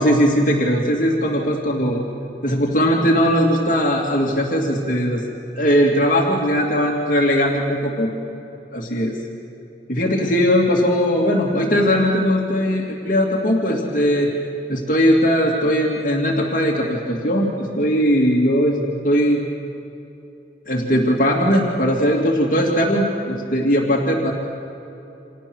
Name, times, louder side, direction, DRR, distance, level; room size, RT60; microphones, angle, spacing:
voice 1, 0.0-2.0 2.4-5.2 5.6-8.1 8.7-9.1 9.9-14.3 14.7-19.4 20.7-24.3, equal, 50° left, -2 dB, 2.6 m, -19 dB
29.5 x 27.5 x 6.4 m, 3.0 s
head